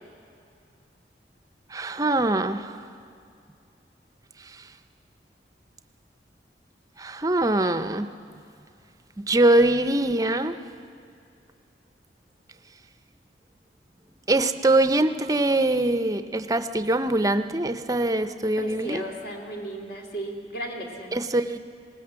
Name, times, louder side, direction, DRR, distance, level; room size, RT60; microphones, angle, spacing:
voice 1, 1.7-2.8 7.0-8.1 9.2-10.6 14.3-19.0 21.1-21.6, right 2 dB, 20° right, 10 dB, 0.6 m, -23 dB
voice 2, 18.6-21.1, right 1 dB, 55° left, 1 dB, 2.7 m, -35 dB
20.0 x 18.5 x 7.5 m, 2.5 s
head